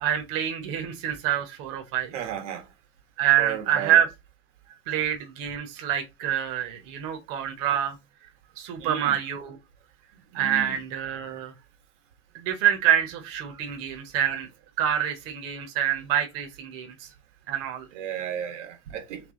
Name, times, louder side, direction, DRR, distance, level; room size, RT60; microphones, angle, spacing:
voice 1, 0.0-2.1 3.2-4.1 4.9-8.0 8.6-9.6 10.3-11.5 12.3-14.5 14.8-17.1 17.5-17.9, right 10 dB, 40° right, 0.9 m, -26 dB
voice 2, 2.1-2.7 3.4-4.0 4.7-4.8 8.8-9.2 10.3-10.8 11.3-11.4 13.6-13.8 17.9-19.3, right 9 dB, 80° right, 1.5 m, -34 dB
3.5 x 3.4 x 3.6 m
supercardioid pair, 165°, 36 cm